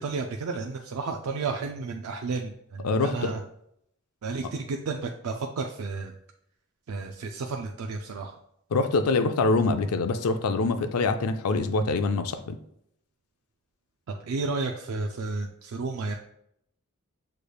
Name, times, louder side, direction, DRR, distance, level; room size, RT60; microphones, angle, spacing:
voice 1, 0.0-3.4 4.2-6.1 6.9-8.3 14.2-16.2, right 4 dB, 70° right, 3 dB, 0.4 m, -32 dB
voice 2, 2.8-3.3 8.7-12.6, left 3 dB, 80° left, 9 dB, 0.4 m, -25 dB
6.6 x 3.2 x 2.3 m, 0.74 s
head